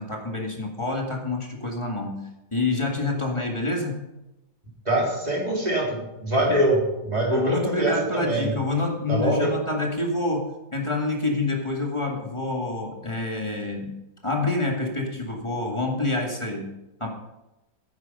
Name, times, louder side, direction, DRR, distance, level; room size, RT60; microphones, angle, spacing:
voice 1, 0.0-2.2 2.5-4.1 7.3-13.9 14.2-16.7 17.0-17.1, left 2 dB, 15° left, 0 dB, 1.8 m, -27 dB
voice 2, 4.8-8.5 9.1-9.5, right 1 dB, 20° right, -3 dB, 3.4 m, -24 dB
9.6 x 9.5 x 5.4 m, 0.96 s
omnidirectional pair, 2.0 m